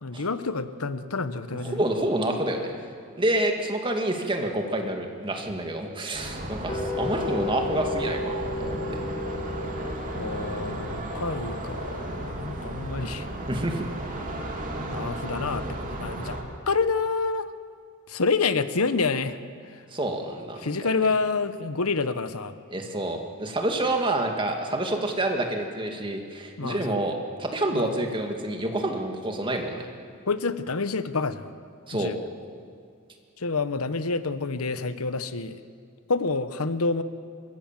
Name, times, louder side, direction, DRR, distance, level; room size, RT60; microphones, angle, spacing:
voice 1, 0.0-1.8 10.1-13.3 14.9-16.4 16.7-17.5 18.1-19.4 19.7-19.8 20.6-22.5 26.6-27.0 27.7-28.0 30.3-31.5 31.9-32.2 33.4-35.6 36.1-37.0, left 4 dB, 85° left, 12 dB, 1.1 m, -28 dB
voice 2, 1.6-2.7 3.2-9.0 13.5-13.9 19.9-20.9 22.7-29.9 31.9-32.1, right 1 dB, 25° right, 3 dB, 2.2 m, -28 dB
sound 1, 6.1-16.4, right 1 dB, 40° right, 2.9 m, -34 dB
sound 2, 6.7-12.8, left 3 dB, 20° left, 2.1 m, -34 dB
25.0 x 22.0 x 7.6 m, 2.2 s
head